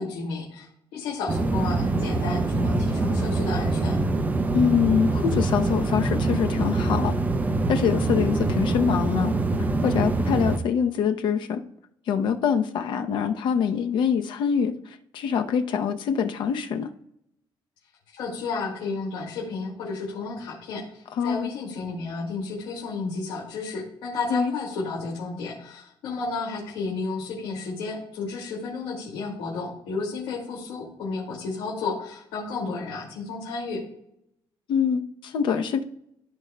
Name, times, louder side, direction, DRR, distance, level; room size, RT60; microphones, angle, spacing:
voice 1, 0.0-4.0 18.1-33.8, left 4 dB, 90° left, -5 dB, 2.3 m, -32 dB
sound 1, 1.3-10.6, right 2 dB, 20° right, 0.6 m, -24 dB
voice 2, 4.5-7.1 7.7-9.3 9.8-11.6 12.1-14.7 15.1-16.9 21.2-21.5 24.3-24.5 34.7-35.8, left 7 dB, 65° left, 7 dB, 0.8 m, -24 dB
14.5 x 5.2 x 2.3 m, 0.75 s
cardioid pair, 155°, 9 cm